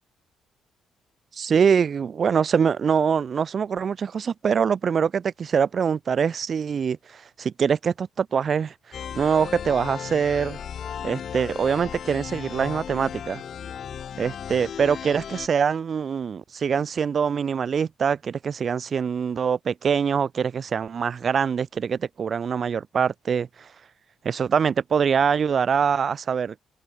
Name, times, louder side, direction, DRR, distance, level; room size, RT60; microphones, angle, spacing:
voice 1, 1.3-8.7 9.2-10.6 11.0-13.4 14.2-23.7 24.2-26.5, right 6 dB, 50° right, 0.6 m, -24 dB
sound 1, 8.9-15.5, left 8 dB, 60° left, 1.3 m, -35 dB
cardioid pair, 90°, 0 cm